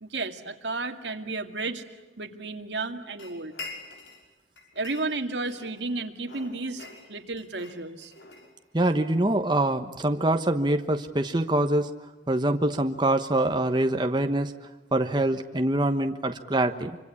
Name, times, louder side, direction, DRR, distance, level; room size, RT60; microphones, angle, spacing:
voice 1, 0.0-1.8 2.2-3.6 4.8-8.1, right 3 dB, 80° right, 5 dB, 2.3 m, -33 dB
sound 1, 3.2-4.2 4.6-5.8 6.2-8.9, left 3 dB, 80° left, 5.7 m, -44 dB
voice 2, 8.7-11.9 12.3-14.5 14.9-17.0, right 1 dB, 25° right, 6 dB, 1.2 m, -24 dB
26.5 x 25.0 x 8.5 m, 1.2 s
head